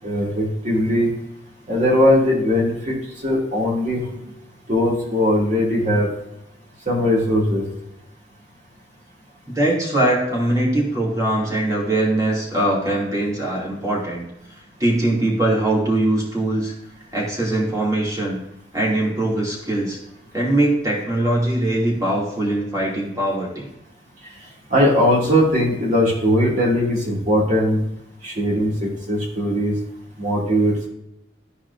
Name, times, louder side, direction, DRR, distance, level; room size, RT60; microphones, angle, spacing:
voice 1, 0.0-1.1 1.7-4.0 4.7-6.1 6.8-7.6 24.4-27.8 28.2-29.7 30.2-30.9, equal, 45° right, -3 dB, 2.7 m, -19 dB
voice 2, 9.5-14.2 14.8-16.7 17.1-18.4 18.7-20.0 20.3-23.7, right 1 dB, 20° right, -4 dB, 2.7 m, -21 dB
13.5 x 4.8 x 2.7 m, 0.82 s
head